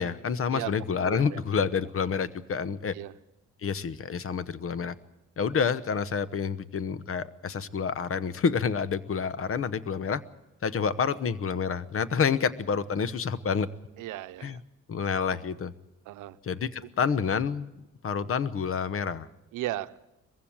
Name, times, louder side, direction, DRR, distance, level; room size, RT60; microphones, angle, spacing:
voice 1, 0.0-2.9 3.6-4.9 5.4-10.2 10.6-13.7 14.4-14.6 14.9-15.7 16.4-17.7 18.0-19.3, left 6 dB, 45° left, 16 dB, 1.0 m, -28 dB
voice 2, 1.0-1.4 2.9-3.1 14.0-14.6 16.1-16.4 19.5-20.0, right 16 dB, 85° right, 12 dB, 0.8 m, -35 dB
21.5 x 15.5 x 8.8 m, 0.97 s
cardioid pair, 90°, 30 cm